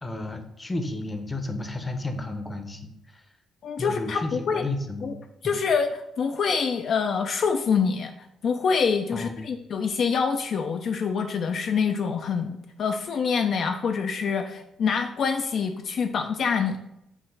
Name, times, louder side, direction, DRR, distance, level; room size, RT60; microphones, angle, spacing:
voice 1, 0.0-3.2 3.8-5.2 5.4-5.6 9.1-9.4, left 2 dB, 20° left, 7 dB, 0.6 m, -32 dB
voice 2, 3.6-4.6 5.0-5.1 5.4-8.1 8.4-16.8, left 6 dB, 60° left, 6 dB, 0.3 m, -26 dB
5.8 x 2.1 x 3.8 m, 0.81 s
cardioid pair, 90°, 0 cm